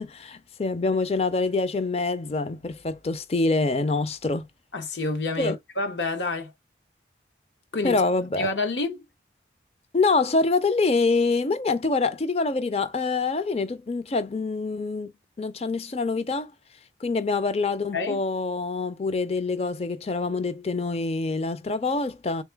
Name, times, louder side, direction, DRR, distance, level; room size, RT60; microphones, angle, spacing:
voice 1, 0.0-4.5 5.4-5.6 7.8-8.5 9.9-15.1 15.4-16.5 17.0-22.4, left 3 dB, 35° left, 0.5 m, -25 dB
voice 2, 4.7-6.5 7.7-8.0 8.4-9.0 17.9-18.2, left 3 dB, 75° left, 1.0 m, -28 dB
3.8 x 2.9 x 3.4 m
head